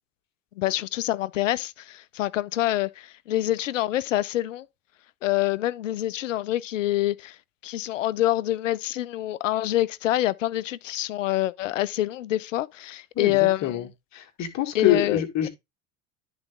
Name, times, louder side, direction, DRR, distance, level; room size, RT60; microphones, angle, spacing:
voice 1, 0.6-4.7 5.2-7.4 7.6-13.8 14.7-15.5, left 15 dB, 90° left, 0.5 m, -26 dB
voice 2, 13.2-15.5, left 11 dB, 50° left, 1.7 m, -26 dB
10.5 x 4.0 x 3.5 m
hypercardioid pair, 75°, 37 cm